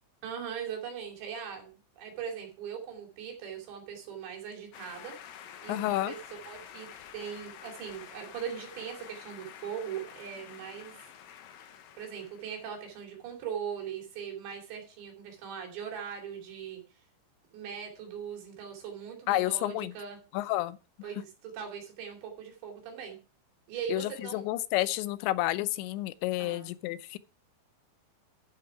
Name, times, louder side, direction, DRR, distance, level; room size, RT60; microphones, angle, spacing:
voice 1, 0.2-5.1 5.6-6.2 6.4-11.1 12.0-16.8 17.5-20.2 21.0-23.2 23.7-24.4 26.4-26.7, right 8 dB, 80° right, 5.0 m, -40 dB
sound 1, 4.7-13.0, left 9 dB, 70° left, 2.3 m, -49 dB
voice 2, 5.7-6.1 19.3-19.9 20.3-20.8 23.9-27.2, left 16 dB, 90° left, 3.0 m, -30 dB
11.5 x 7.8 x 4.7 m
omnidirectional pair, 5.1 m